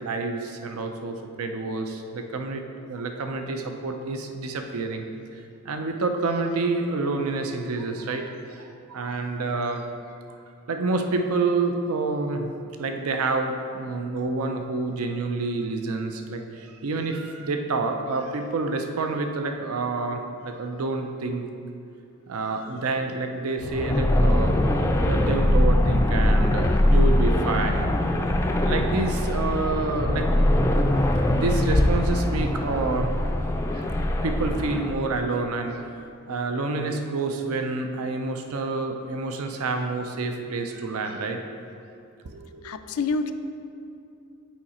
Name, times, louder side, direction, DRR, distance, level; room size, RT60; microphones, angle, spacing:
voice 1, 0.0-5.0 5.6-9.8 10.3-10.4 10.7-12.5 12.8-21.5 22.3-24.7 25.1-28.1 28.6-30.7 30.9-33.1 33.7-35.9 36.3-41.4 42.3-42.6, right 3 dB, 80° right, 5 dB, 0.5 m, -28 dB
sound 1, 23.6-34.9, left 1 dB, 15° left, 0.3 m, -22 dB
voice 2, 42.6-43.3, left 4 dB, 85° left, 9 dB, 0.4 m, -27 dB
7.2 x 4.8 x 4.2 m, 2.6 s
head